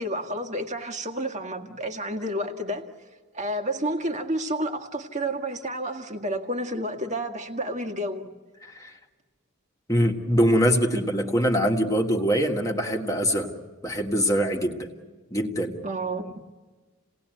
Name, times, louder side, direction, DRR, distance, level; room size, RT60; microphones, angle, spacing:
voice 1, 0.0-2.9 3.3-8.3 15.8-16.4, right 1 dB, 30° right, 4 dB, 1.8 m, -30 dB
voice 2, 8.6-8.9 9.9-13.5 13.8-14.9 15.3-15.8, equal, 15° left, 2 dB, 1.7 m, -23 dB
29.0 x 18.5 x 9.2 m, 1.4 s
head